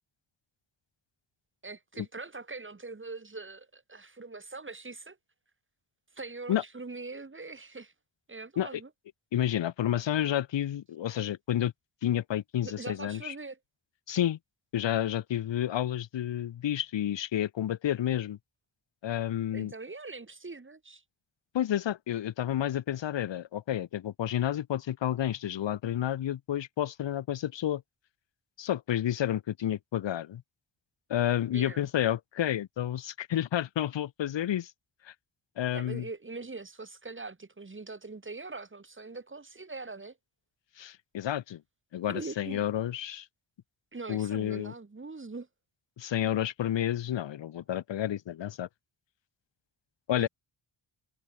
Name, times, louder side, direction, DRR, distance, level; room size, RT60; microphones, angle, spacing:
voice 1, 1.6-5.2 6.1-7.9 8.3-8.9 12.6-13.6 19.5-21.0 31.5-31.9 35.7-40.2 42.1-42.6 43.9-45.5 50.2-50.3, right 3 dB, 25° right, 2.3 m, -42 dB
voice 2, 9.3-11.7 12.0-13.3 14.1-14.4 14.7-18.4 19.0-19.7 21.5-27.8 28.6-30.4 31.1-34.7 35.0-35.1 35.6-36.1 40.8-41.6 41.9-43.3 44.1-44.7 46.0-48.7 50.1-50.3, left 11 dB, 60° left, 0.7 m, -30 dB
wide cardioid pair, 175°, 49 cm